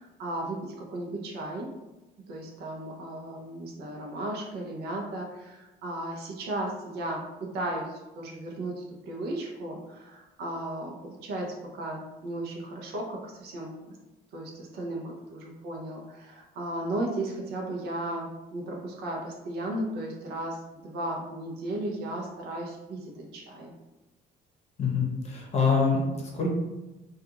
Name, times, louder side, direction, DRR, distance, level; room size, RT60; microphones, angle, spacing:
voice 1, 0.0-1.7 2.3-13.8 14.3-23.7, right 1 dB, 80° right, -1 dB, 0.6 m, -35 dB
voice 2, 24.8-26.5, left 4 dB, 40° left, -1 dB, 0.7 m, -25 dB
2.4 x 2.3 x 2.8 m, 1.1 s
cardioid pair, 110°, 17 cm